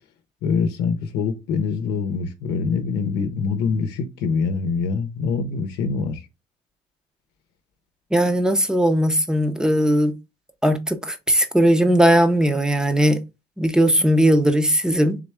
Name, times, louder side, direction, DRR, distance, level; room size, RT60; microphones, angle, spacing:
voice 1, 0.4-6.2, left 5 dB, 85° left, 0.7 m, -24 dB
voice 2, 8.1-10.1 10.6-13.2 13.6-15.2, equal, 5° right, 0.7 m, -18 dB
3.7 x 3.2 x 3.4 m
cardioid pair, 110°, 17 cm